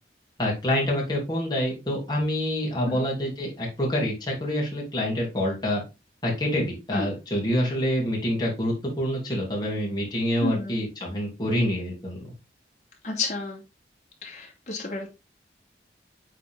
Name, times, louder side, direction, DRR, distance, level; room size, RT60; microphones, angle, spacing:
voice 1, 0.4-5.8 6.2-12.3, equal, 25° left, -2 dB, 2.8 m, -27 dB
voice 2, 10.4-10.7 13.0-13.6 14.2-15.1, left 2 dB, 40° left, -2 dB, 2.6 m, -31 dB
8.3 x 4.1 x 3.6 m, 0.27 s
head